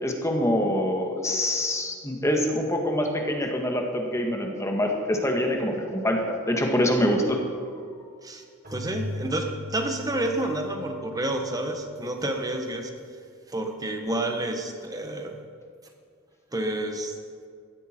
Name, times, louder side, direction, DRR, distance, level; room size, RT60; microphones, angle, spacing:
voice 1, 0.0-7.4, left 1 dB, 15° left, 2 dB, 1.6 m, -25 dB
Keyboard (musical), 8.6-12.2, left 1 dB, 45° right, 3.2 m, -39 dB
voice 2, 8.7-12.9 13.5-15.3 16.5-17.1, right 1 dB, 20° right, 4 dB, 1.4 m, -29 dB
16.0 x 13.0 x 4.5 m, 2.2 s
head